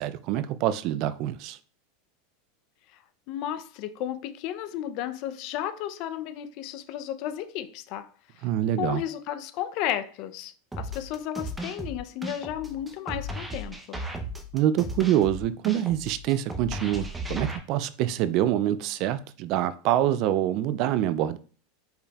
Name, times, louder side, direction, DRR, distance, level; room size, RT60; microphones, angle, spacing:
voice 1, 0.0-1.6 8.4-9.0 14.5-21.4, right 12 dB, 50° right, 0.3 m, -26 dB
voice 2, 3.3-8.1 8.4-8.5 8.8-14.0, left 11 dB, 50° left, 0.5 m, -33 dB
sound 1, 10.7-17.6, equal, 10° right, 0.7 m, -35 dB
5.1 x 4.4 x 2.4 m
supercardioid pair, 140°, 0 cm